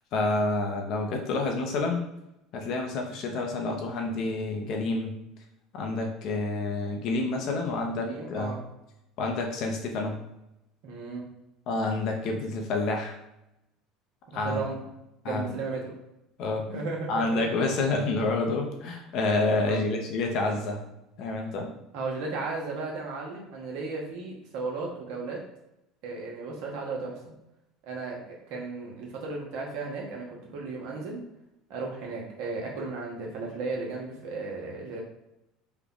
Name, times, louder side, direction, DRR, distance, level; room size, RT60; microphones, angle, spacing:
voice 1, 0.1-2.0 2.5-5.1 5.7-8.5 9.2-10.2 11.7-13.2 14.3-14.6 15.2-15.6 16.4-16.7 17.1-20.8 21.2-21.7, left 2 dB, 60° left, 2 dB, 0.8 m, -28 dB
voice 2, 8.0-8.6 10.8-11.2 14.4-14.8 15.2-16.0 16.7-17.4 19.7-19.8 21.9-25.4 26.0-27.3 27.8-31.2 31.7-35.0, right 3 dB, 70° right, -1 dB, 1.1 m, -35 dB
3.3 x 2.2 x 3.8 m, 0.87 s
supercardioid pair, 90°, 0 cm